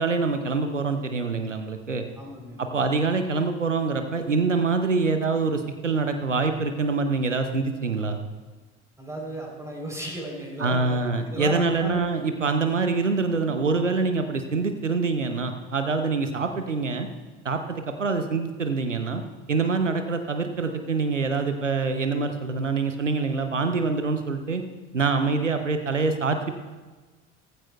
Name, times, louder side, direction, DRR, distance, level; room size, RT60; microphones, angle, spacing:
voice 1, 0.0-2.0 2.6-8.2 10.6-17.1 17.4-19.2 19.5-24.6 24.9-26.5, right 4 dB, 90° right, 7 dB, 0.7 m, -25 dB
voice 2, 2.2-2.6 9.0-11.0 11.3-12.0, right 1 dB, 10° right, -2 dB, 3.5 m, -34 dB
16.0 x 15.0 x 2.3 m, 1.3 s
figure-of-eight pair, 60°, 36 cm